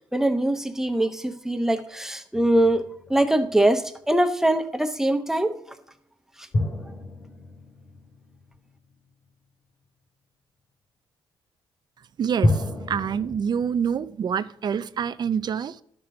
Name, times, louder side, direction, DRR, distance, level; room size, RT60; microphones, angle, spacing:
voice 1, 0.1-5.6, right 1 dB, 5° right, 0.9 m, -23 dB
sound 1, 2.3-3.7 6.5-9.1 12.4-13.4, left 1 dB, 50° left, 2.8 m, -29 dB
voice 2, 12.2-15.8, right 7 dB, 50° right, 0.4 m, -27 dB
12.0 x 5.9 x 3.8 m
cardioid pair, 85°, 9 cm